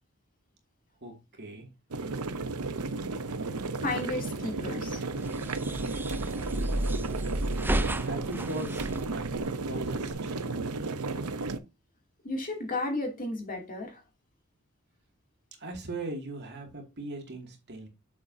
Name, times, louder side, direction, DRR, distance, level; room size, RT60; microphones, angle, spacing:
voice 1, 1.0-1.7 8.0-9.3 9.6-10.4 15.6-17.9, right 2 dB, 50° right, 2.4 m, -39 dB
sound 1, 1.9-11.6, right 3 dB, 90° right, 0.8 m, -33 dB
voice 2, 3.8-5.1 12.2-14.0, left 2 dB, 40° left, 2.7 m, -33 dB
sound 2, 5.1-10.1, right 1 dB, 10° right, 0.4 m, -33 dB
7.6 x 7.0 x 2.7 m
head